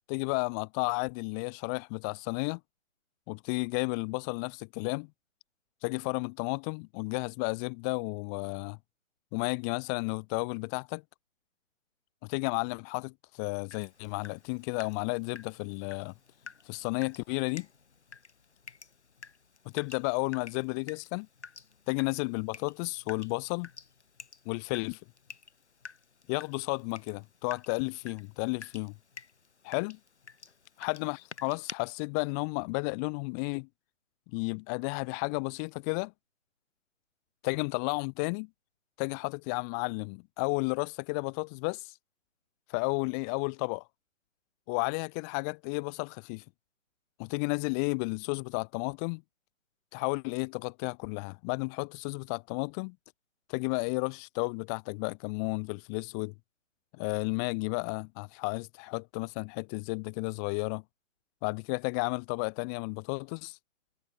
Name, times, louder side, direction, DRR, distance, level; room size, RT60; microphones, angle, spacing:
voice 1, 0.1-2.6 3.3-5.1 5.8-8.8 9.3-11.0 12.2-16.1 16.7-17.7 19.7-21.3 21.9-23.7 24.5-25.0 26.3-28.9 29.6-30.0 30.8-33.7 34.3-36.1 37.4-38.5 39.0-41.9 42.7-43.8 44.7-46.4 47.2-49.2 49.9-53.0 53.5-56.3 57.0-60.8 61.4-63.6, left 37 dB, 15° left, 1.7 m, -32 dB
Water tap faucet / Drip, 13.7-31.7, left 5 dB, 55° left, 7.9 m, -51 dB
figure-of-eight pair, 150°, 40 cm